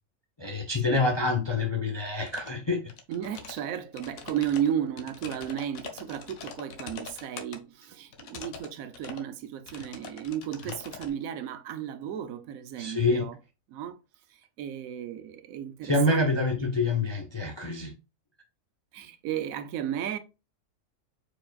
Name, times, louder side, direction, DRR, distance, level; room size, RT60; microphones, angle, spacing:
voice 1, 0.4-2.8 10.6-10.7 12.8-13.3 15.8-17.9, left 2 dB, 40° left, 0.4 m, -26 dB
sound 1, 2.3-2.6 2.9-3.6 3.9-7.6 8.1-8.7 8.9-9.3 9.7-11.1, left 6 dB, 80° left, 1.2 m, -43 dB
voice 2, 3.1-13.3 13.7-14.0 14.6-16.3 18.9-20.2, right 10 dB, 85° right, 1.1 m, -34 dB
4.6 x 4.2 x 2.3 m
omnidirectional pair, 1.4 m